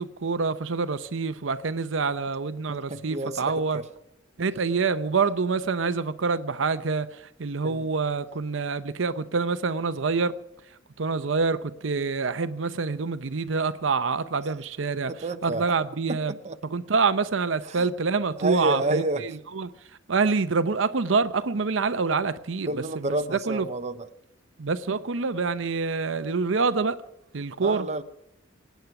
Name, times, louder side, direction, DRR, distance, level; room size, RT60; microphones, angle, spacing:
voice 1, 0.0-3.8 4.4-10.3 11.0-16.4 16.6-19.7 20.1-23.7 24.6-27.0 27.3-27.9, right 4 dB, 75° right, 0.7 m, -26 dB
voice 2, 2.7-3.8 7.6-7.9 15.1-15.7 16.1-16.2 16.4-16.5 17.7-17.9 18.4-19.2 22.7-24.1 24.9-25.0 27.6-28.0, right 2 dB, 35° right, 0.8 m, -30 dB
25.5 x 9.3 x 5.9 m
head